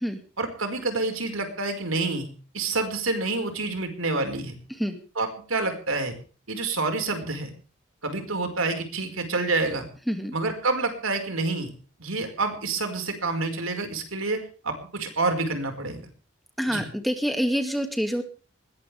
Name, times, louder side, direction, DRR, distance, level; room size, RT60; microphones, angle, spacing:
voice 1, 0.4-2.3 2.5-4.6 5.1-6.2 6.5-7.5 8.0-9.9 10.3-11.7 12.0-16.1 16.7-16.8, right 3 dB, 90° right, 6 dB, 5.2 m, -28 dB
voice 2, 16.6-18.2, equal, ahead, 5 dB, 2.3 m, -26 dB
21.0 x 19.0 x 3.5 m, 0.40 s
head